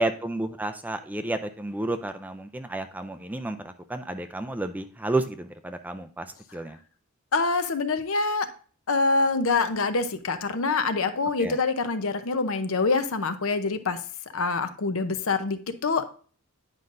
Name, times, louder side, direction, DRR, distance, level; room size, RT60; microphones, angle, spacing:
voice 1, 0.0-6.3 6.5-6.8 11.4-11.6, right 2 dB, 5° right, 8 dB, 0.3 m, -31 dB
voice 2, 7.3-8.5 8.9-14.0 14.3-16.0, left 3 dB, 65° left, 10 dB, 0.7 m, -25 dB
9.6 x 5.3 x 2.5 m, 0.41 s
head